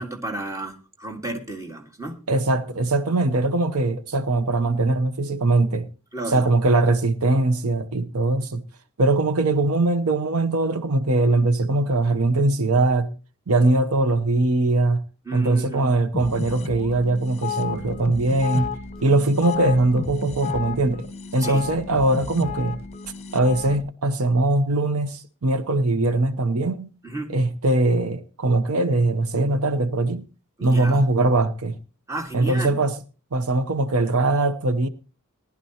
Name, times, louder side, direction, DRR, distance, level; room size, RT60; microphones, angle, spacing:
voice 1, 0.0-2.2 6.1-6.4 15.3-15.9 21.4-21.6 27.0-27.4 30.6-31.0 32.1-32.8, right 2 dB, 15° right, 1.7 m, -32 dB
voice 2, 2.3-5.9 6.3-8.6 9.0-13.1 13.5-15.0 15.3-18.7 19.0-21.1 21.3-22.8 23.3-26.9 27.3-30.3 30.6-31.8 32.3-32.9 33.3-34.9, right 2 dB, 80° right, 0.9 m, -21 dB
sound 1, 16.1-23.8, left 5 dB, 30° left, 1.0 m, -32 dB
18.5 x 11.0 x 2.9 m
head